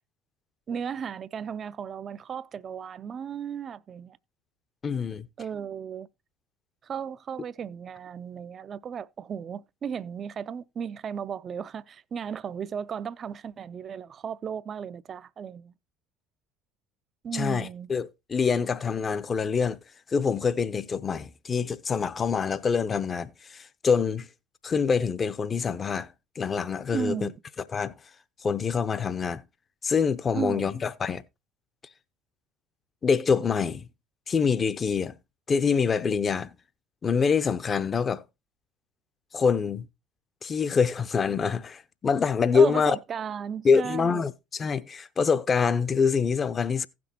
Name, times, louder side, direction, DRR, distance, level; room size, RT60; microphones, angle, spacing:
voice 1, 0.7-4.2 5.4-6.1 6.8-15.7 17.2-17.9 26.9-27.3 30.3-30.8 42.5-44.3, right 7 dB, 40° right, 0.4 m, -35 dB
voice 2, 4.8-5.3 17.3-19.8 20.1-24.3 24.6-27.3 27.7-27.9 28.4-29.4 29.8-31.2 33.0-33.9 34.3-35.1 35.5-36.5 37.0-38.2 39.3-39.9 40.4-43.0 43.6-46.9, left 5 dB, 30° left, 0.6 m, -25 dB
16.0 x 6.1 x 2.8 m
figure-of-eight pair, 65°, 0 cm